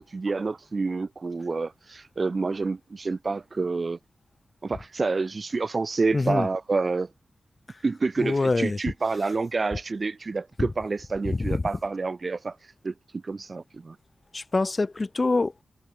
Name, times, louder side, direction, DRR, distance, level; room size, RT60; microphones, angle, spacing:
voice 1, 0.0-4.0 4.6-7.1 7.8-12.5 12.8-14.0, right 3 dB, 35° right, 1.3 m, -28 dB
voice 2, 6.1-6.5 7.7-7.8 8.2-8.8 10.6-10.7 11.3-11.7 14.3-15.6, left 3 dB, 25° left, 1.2 m, -25 dB
wide cardioid pair, 160°, 0 cm